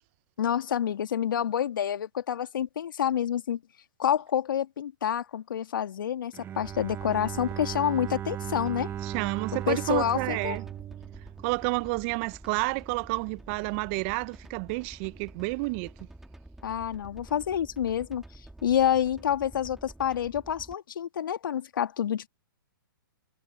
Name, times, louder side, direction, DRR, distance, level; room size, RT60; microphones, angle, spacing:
voice 1, 0.4-3.6 4.0-8.9 9.7-10.6 16.6-18.2 18.6-22.3, left 9 dB, 65° left, 2.2 m, -28 dB
Bowed string instrument, 6.3-12.3, right 11 dB, 20° right, 1.4 m, -37 dB
sound 1, 6.6-20.7, right 1 dB, 5° right, 2.1 m, -49 dB
voice 2, 9.0-10.6 11.4-15.9, right 28 dB, 35° right, 0.8 m, -30 dB
hypercardioid pair, 130°, 12 cm